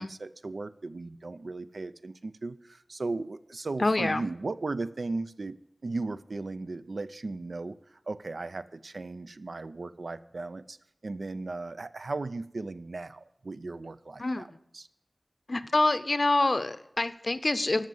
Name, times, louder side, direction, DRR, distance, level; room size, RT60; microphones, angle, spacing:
voice 1, 0.0-5.6 5.8-10.8 11.0-14.9, right 3 dB, 85° right, 12 dB, 0.5 m, -36 dB
voice 2, 3.8-4.2 14.2-14.5 15.5-17.9, left 2 dB, 55° left, 13 dB, 0.6 m, -26 dB
12.5 x 6.5 x 7.7 m, 0.77 s
wide cardioid pair, 60°, 0 cm